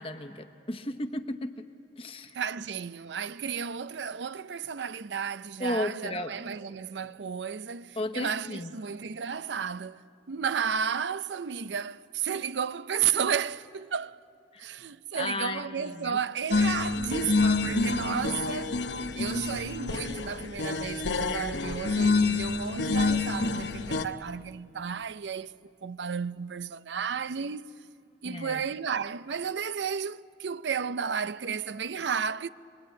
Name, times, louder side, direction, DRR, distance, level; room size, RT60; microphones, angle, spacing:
voice 1, 0.0-1.6 2.0-2.4 5.6-6.3 8.0-8.8 14.5-14.6 15.1-16.2 28.2-28.6, left 1 dB, 30° left, 1.0 m, -34 dB
voice 2, 2.3-10.0 10.3-14.2 14.6-18.8 19.2-25.5 25.8-27.6 28.2-32.5, right 7 dB, 85° right, 0.6 m, -33 dB
sound 1, 16.5-24.0, left 3 dB, 85° left, 0.9 m, -28 dB
24.5 x 22.0 x 9.2 m
head